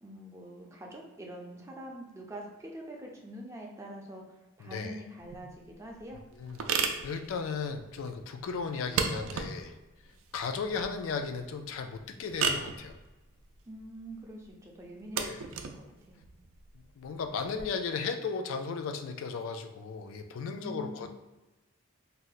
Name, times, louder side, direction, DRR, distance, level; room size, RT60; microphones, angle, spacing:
voice 1, 0.0-6.2 13.7-16.2 20.5-21.1, right 1 dB, 15° right, -1 dB, 0.4 m, -45 dB
voice 2, 4.6-5.0 6.4-9.7 10.3-13.0 15.2-15.4 16.7-21.1, left 5 dB, 80° left, 6 dB, 0.3 m, -36 dB
sound 1, 5.2-17.6, right 5 dB, 80° right, 0.4 m, -36 dB
2.7 x 2.1 x 3.9 m, 1.1 s
head